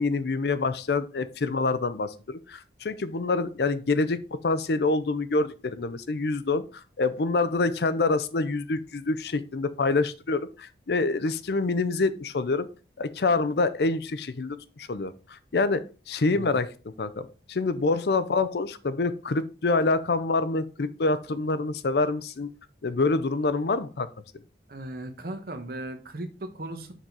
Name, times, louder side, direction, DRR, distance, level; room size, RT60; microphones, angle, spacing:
voice 1, 0.0-12.7 13.0-16.7 17.0-22.5 22.8-24.1, left 3 dB, 65° left, 13 dB, 0.5 m, -26 dB
voice 2, 24.7-26.9, right 1 dB, 55° right, 7 dB, 1.0 m, -37 dB
6.4 x 4.0 x 4.6 m, 0.35 s
head